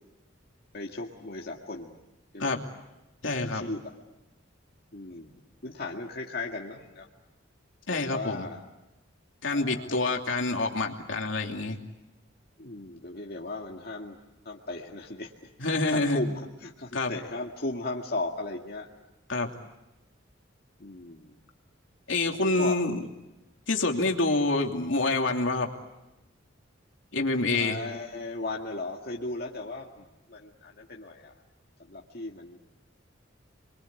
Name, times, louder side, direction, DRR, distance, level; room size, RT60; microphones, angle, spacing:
voice 1, 0.7-2.0 2.3-2.6 3.3-4.0 4.9-7.1 7.9-8.6 9.5-10.1 12.6-14.2 14.5-15.3 15.7-18.9 20.8-21.4 22.6-22.8 27.5-31.3 31.8-32.6, left 2 dB, 55° left, -1 dB, 2.1 m, -37 dB
voice 2, 3.2-3.6 7.9-8.5 9.4-11.8 15.6-16.2 16.9-17.1 19.3-19.5 22.1-23.1 23.7-25.7 27.1-27.8, left 2 dB, 80° left, 2 dB, 2.9 m, -27 dB
29.5 x 23.0 x 8.4 m, 0.98 s
head